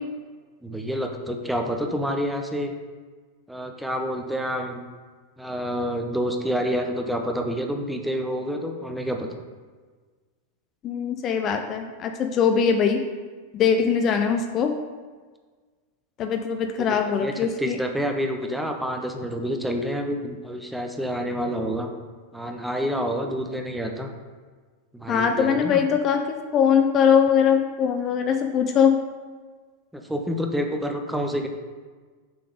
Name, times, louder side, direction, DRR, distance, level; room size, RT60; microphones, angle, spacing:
voice 1, 0.6-2.7 3.5-4.8 5.4-9.3 16.8-17.3 17.6-21.9 22.3-24.1 24.9-25.8 29.9-31.5, equal, 5° right, 3 dB, 0.7 m, -28 dB
voice 2, 10.8-13.0 13.5-14.8 16.2-17.8 25.1-29.0, left 7 dB, 30° left, 6 dB, 0.4 m, -21 dB
6.9 x 3.8 x 5.1 m, 1.5 s
figure-of-eight pair, 90°, 0 cm